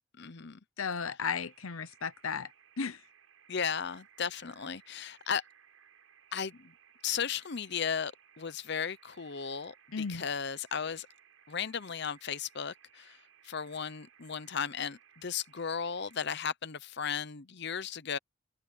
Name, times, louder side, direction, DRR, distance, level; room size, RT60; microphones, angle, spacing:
voice 1, 0.2-0.6 3.5-5.4 6.3-6.7 7.0-11.1 11.5-13.2 13.4-18.2, left 7 dB, 55° left, 0.7 m, -35 dB
voice 2, 0.8-2.5 2.8-3.0 9.9-10.2, left 5 dB, 80° left, 0.9 m, -34 dB
sound 1, 1.5-16.4, right 8 dB, 85° right, 6.0 m, -62 dB
head